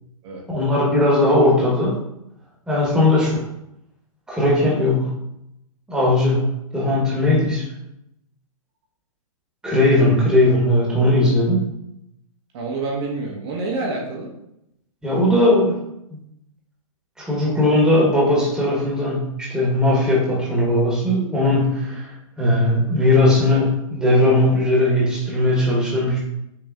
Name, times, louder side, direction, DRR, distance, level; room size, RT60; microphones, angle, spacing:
voice 1, 0.5-2.0 2.7-3.3 4.3-5.2 5.9-6.5 6.7-7.6 9.6-11.6 15.0-15.7 17.2-22.1 22.4-26.2, left 1 dB, 5° right, -6 dB, 1.2 m, -18 dB
voice 2, 12.5-14.3, right 3 dB, 45° right, -1 dB, 1.2 m, -28 dB
5.9 x 3.1 x 2.5 m, 0.81 s
hypercardioid pair, 130°, 19 cm